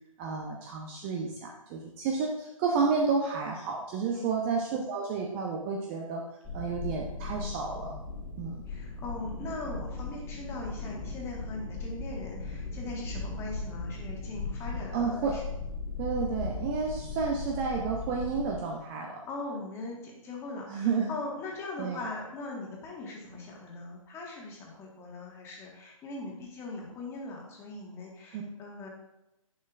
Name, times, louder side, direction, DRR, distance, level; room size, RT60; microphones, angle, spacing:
voice 1, 0.2-6.2 6.5-7.9 8.4-8.6 14.9-15.4 16.0-19.2 20.7-21.1 21.8-22.0 28.3-28.4, right 5 dB, 20° right, 0 dB, 0.7 m, -31 dB
sound 1, 6.4-18.6, left 3 dB, 5° right, 1.6 m, -38 dB
voice 2, 8.7-15.4 19.3-28.9, left 2 dB, 15° left, -2 dB, 1.6 m, -40 dB
10.5 x 6.3 x 2.5 m, 0.89 s
figure-of-eight pair, 135°, 18 cm